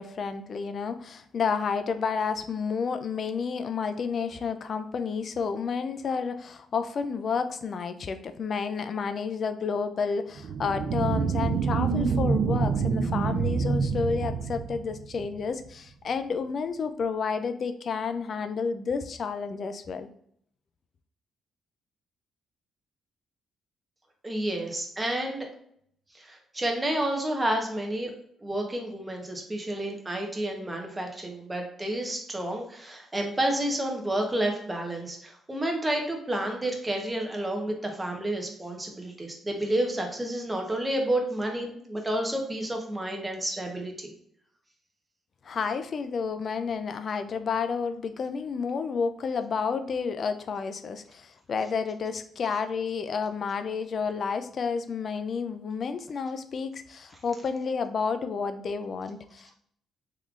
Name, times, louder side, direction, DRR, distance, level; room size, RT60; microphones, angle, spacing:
voice 1, 0.0-20.1 45.4-59.6, left 5 dB, 50° left, 9 dB, 0.3 m, -30 dB
sound 1, 10.4-15.4, right 5 dB, 70° right, 0.3 m, -27 dB
voice 2, 24.2-25.5 26.1-28.1 28.4-44.1, right 1 dB, 15° right, 2 dB, 0.9 m, -30 dB
3.6 x 3.2 x 2.4 m, 0.67 s
cardioid pair, 90°, 0 cm